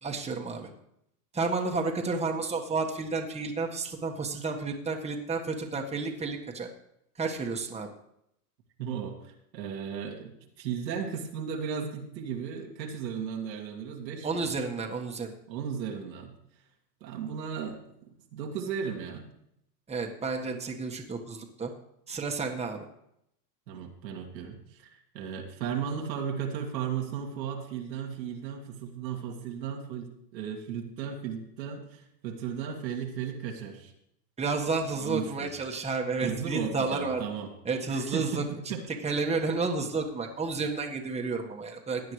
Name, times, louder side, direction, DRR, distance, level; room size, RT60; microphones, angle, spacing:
voice 1, 0.0-0.7 1.3-6.7 7.2-7.9 14.2-15.3 19.9-21.7 22.1-22.9 34.4-37.2 37.6-38.7 39.0-42.0, right 4 dB, 15° right, 1 dB, 1.4 m, -31 dB
voice 2, 8.8-14.4 15.5-16.4 17.0-17.9 18.3-19.2 23.7-33.9 35.0-35.8 36.2-37.5 37.9-38.9, right 7 dB, 85° right, 1 dB, 2.1 m, -35 dB
16.0 x 9.7 x 3.2 m, 0.76 s
hypercardioid pair, 110°, 50 cm